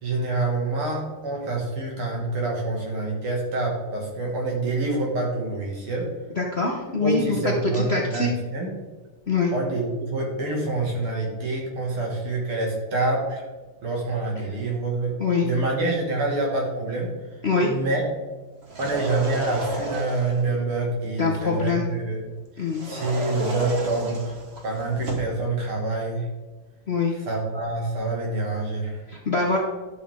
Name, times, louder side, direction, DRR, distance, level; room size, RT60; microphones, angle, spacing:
voice 1, 0.0-6.1 7.0-8.7 9.5-13.5 13.8-17.1 17.6-18.1 18.8-22.2 22.8-24.4 24.6-26.3 27.3-29.0, right 2 dB, 75° right, -1 dB, 2.9 m, -26 dB
voice 2, 6.4-8.3 9.3-9.5 15.2-15.5 17.4-17.7 21.2-21.9 22.6-22.9 26.9-27.1 29.1-29.6, left 4 dB, 50° left, -1 dB, 0.7 m, -24 dB
sound 1, 18.6-20.5 22.7-25.4, right 1 dB, 35° right, 1.3 m, -32 dB
11.5 x 6.2 x 3.6 m, 1.2 s
omnidirectional pair, 2.4 m